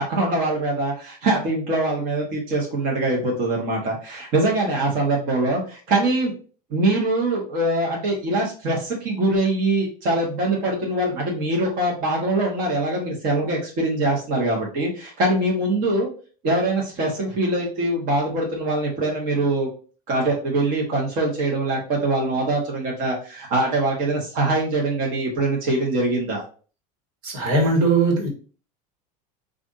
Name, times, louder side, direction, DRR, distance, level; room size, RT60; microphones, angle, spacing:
voice 1, 0.0-6.3 6.7-16.1 16.4-19.7 20.1-26.4, right 2 dB, 50° right, -2 dB, 1.2 m, -23 dB
voice 2, 27.2-28.3, right 3 dB, 75° right, 1 dB, 1.5 m, -19 dB
5.1 x 2.5 x 2.6 m, 0.39 s
supercardioid pair, 140°, 19 cm